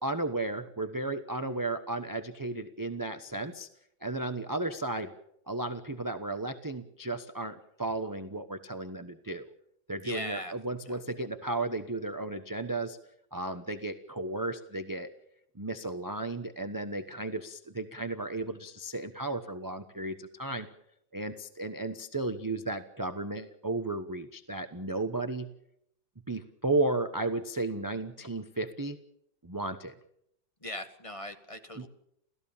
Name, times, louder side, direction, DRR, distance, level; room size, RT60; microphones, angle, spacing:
voice 1, 0.0-3.7 4.0-5.1 5.5-9.5 9.9-13.0 13.3-15.1 15.5-20.7 21.1-25.5 26.3-29.0 29.4-29.9 31.8-31.9, right 2 dB, 15° right, 9 dB, 0.7 m, -34 dB
voice 2, 10.0-10.5 30.6-31.9, left 1 dB, 20° left, 7 dB, 1.6 m, -39 dB
30.0 x 15.0 x 7.2 m, 0.74 s
omnidirectional pair, 2.0 m